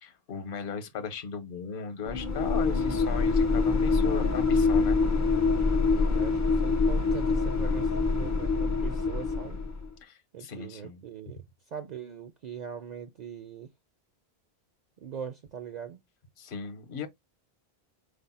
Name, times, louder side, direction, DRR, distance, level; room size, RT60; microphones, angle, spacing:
voice 1, 0.0-5.0 10.0-11.0 16.4-17.1, left 6 dB, 60° left, 0.9 m, -37 dB
sound 1, 2.1-9.9, left 4 dB, 25° left, 0.4 m, -25 dB
voice 2, 5.5-9.6 10.3-11.4 11.7-13.7 15.0-16.0, right 8 dB, 55° right, 0.5 m, -41 dB
5.0 x 2.0 x 4.1 m
omnidirectional pair, 1.1 m